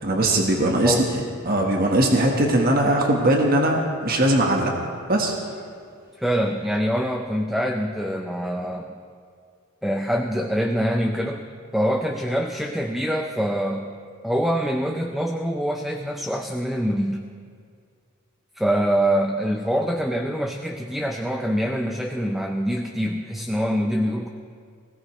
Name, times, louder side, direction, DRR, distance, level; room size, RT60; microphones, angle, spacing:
voice 1, 0.0-4.7 5.1-5.3, right 1 dB, 45° right, 1 dB, 1.4 m, -20 dB
voice 2, 6.2-8.9 9.8-11.5 11.7-14.0 14.2-17.3 18.6-24.3, equal, ahead, 3 dB, 0.5 m, -24 dB
20.5 x 17.0 x 3.1 m, 2.2 s
head